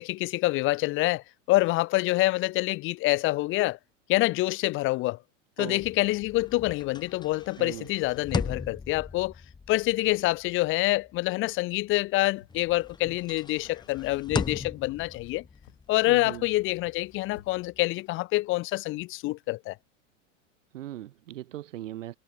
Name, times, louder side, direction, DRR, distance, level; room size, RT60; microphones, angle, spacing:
voice 1, 0.0-3.8 4.1-5.2 5.6-9.3 9.7-15.4 15.9-19.8, left 19 dB, 35° left, 0.5 m, -26 dB
sound 1, 5.7-12.2 12.5-17.9, left 5 dB, 10° left, 0.9 m, -38 dB
voice 2, 7.6-7.9 16.1-16.4 20.7-22.2, right 13 dB, 75° right, 1.0 m, -39 dB
sound 2, 12.3-19.0 19.3-19.4, left 10 dB, 80° left, 7.4 m, -57 dB
hypercardioid pair, 95°, 38 cm